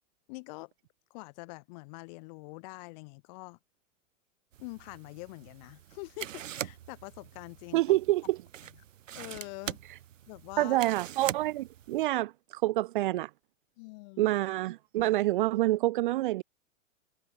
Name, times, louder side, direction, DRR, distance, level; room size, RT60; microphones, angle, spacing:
voice 1, 0.3-0.7 1.1-3.6 4.6-7.8 9.1-9.8 10.3-10.8 13.8-14.3, left 28 dB, 35° left, 3.1 m, -45 dB
sound 1, 4.5-12.0, right 11 dB, 85° right, 2.2 m, -43 dB
voice 2, 7.7-8.4 10.6-13.3 14.2-16.4, right 16 dB, 45° right, 0.9 m, -27 dB
supercardioid pair, 165°, 37 cm